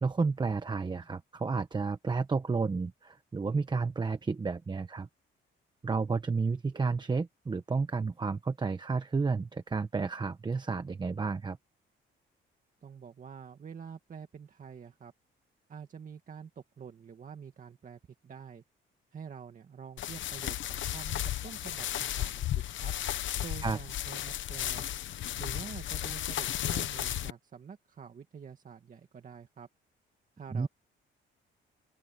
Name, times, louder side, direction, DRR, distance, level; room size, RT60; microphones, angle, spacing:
voice 1, 0.0-5.1 5.8-11.6 23.6-23.8 30.5-30.7, right 4 dB, 20° right, 1.0 m, -31 dB
voice 2, 12.8-15.1 15.7-18.6 19.1-22.5 22.8-22.9 23.4-24.9 25.4-29.7 30.4-30.7, right 7 dB, 40° right, 2.1 m, -47 dB
sound 1, 20.0-27.3, left 12 dB, 65° left, 0.9 m, -34 dB
open air
cardioid pair, 130°, 21 cm